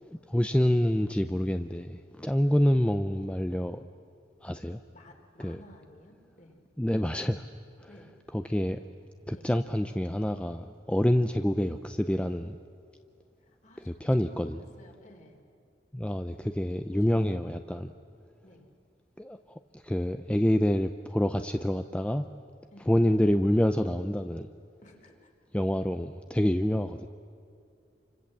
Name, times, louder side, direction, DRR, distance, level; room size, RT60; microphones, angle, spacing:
voice 1, 0.3-3.8 4.4-4.8 5.4-5.6 6.8-7.5 8.3-8.8 9.3-12.6 13.9-14.6 15.9-17.9 19.2-22.3 22.9-24.5 25.5-27.1, equal, 5° left, 8 dB, 0.5 m, -27 dB
voice 2, 4.9-6.6 7.9-8.1 9.3-9.5 11.3-11.4 13.4-15.4 16.9-17.3 18.4-18.7 22.7-22.9 24.8-25.3, left 1 dB, 45° left, 3 dB, 3.6 m, -54 dB
29.0 x 25.5 x 7.5 m, 2.5 s
head